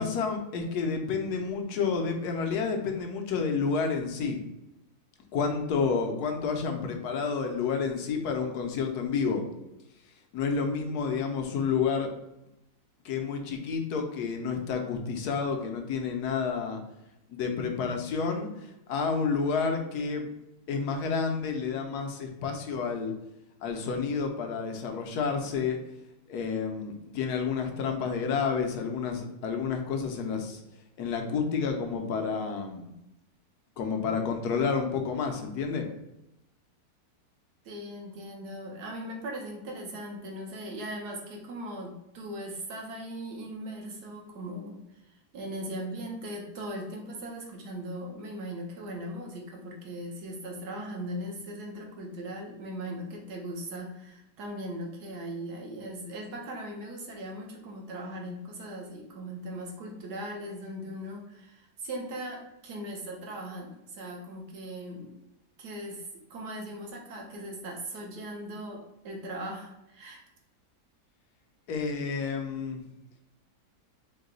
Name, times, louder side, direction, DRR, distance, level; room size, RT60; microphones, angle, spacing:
voice 1, 0.0-4.4 5.3-9.4 10.3-12.1 13.0-16.8 17.3-20.3 20.7-23.1 23.6-25.8 26.3-30.6 31.0-32.9 33.8-35.9 71.7-72.8, left 5 dB, 70° left, 4 dB, 1.1 m, -30 dB
voice 2, 37.6-65.1 65.6-70.2, right 1 dB, 70° right, 0 dB, 1.4 m, -39 dB
4.7 x 2.2 x 3.8 m, 0.90 s
omnidirectional pair, 1.8 m